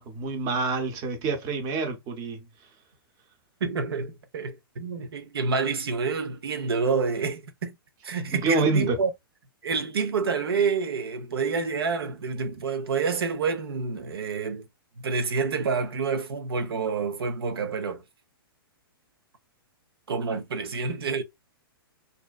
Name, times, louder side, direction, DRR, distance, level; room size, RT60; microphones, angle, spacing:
voice 1, 0.0-2.4 8.3-8.9, right 4 dB, 30° right, 0.7 m, -27 dB
voice 2, 3.6-7.8 8.0-9.1 9.6-14.6 15.0-18.0 20.1-21.2, right 5 dB, 85° right, 0.5 m, -28 dB
2.5 x 2.1 x 2.3 m
hypercardioid pair, 135°, 12 cm